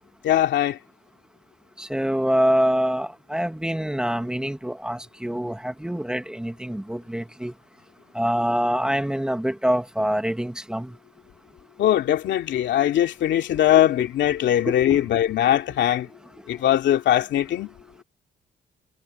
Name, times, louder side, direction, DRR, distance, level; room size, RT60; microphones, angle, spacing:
voice 1, 0.2-0.8 11.8-16.1 16.5-17.7, left 11 dB, 80° left, 2.7 m, -21 dB
voice 2, 1.8-7.5 8.1-10.9 14.7-15.0, equal, 5° right, 1.3 m, -25 dB
cardioid pair, 155°, 18 cm